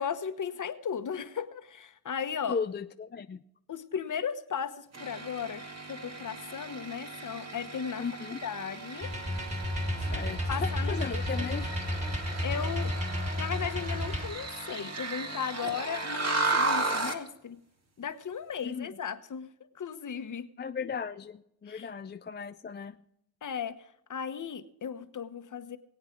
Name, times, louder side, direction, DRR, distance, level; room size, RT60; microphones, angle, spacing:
voice 1, 0.0-2.6 3.7-5.6 5.9-8.0 8.4-9.1 10.5-11.6 12.4-12.9 13.4-17.6 18.0-19.5 19.7-20.5 21.7-21.9 23.4-23.7 24.1-25.8, left 7 dB, 50° left, 10 dB, 1.1 m, -36 dB
voice 2, 2.5-3.4 8.0-8.4 10.0-11.9 18.6-19.0 20.6-23.0, left 6 dB, 30° left, 9 dB, 0.5 m, -36 dB
sound 1, 4.9-17.3, right 2 dB, 40° right, 2.0 m, -35 dB
sound 2, 9.0-14.3, left 1 dB, 20° right, 2.3 m, -32 dB
21.0 x 8.8 x 4.5 m, 0.78 s
cardioid pair, 75°, 38 cm